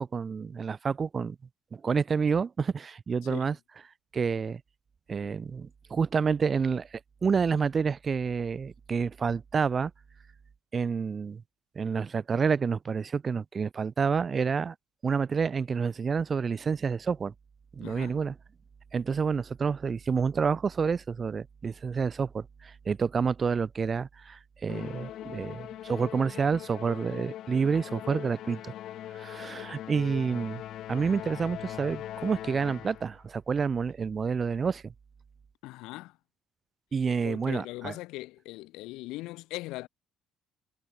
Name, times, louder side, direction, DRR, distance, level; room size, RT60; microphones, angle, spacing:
voice 1, 0.0-1.4 1.7-3.5 4.1-4.6 5.1-9.9 10.7-11.4 11.7-14.7 15.0-17.3 17.7-18.3 18.9-28.7 29.1-30.6 30.9-34.9 36.9-37.9, right 5 dB, 30° right, 1.2 m, -29 dB
voice 2, 3.2-3.6 17.8-18.2 35.6-36.2 37.2-39.9, left 19 dB, 90° left, 1.6 m, -40 dB
Musical instrument, 24.7-33.2, left 12 dB, 65° left, 4.2 m, -41 dB
cardioid pair, 120°, 0 cm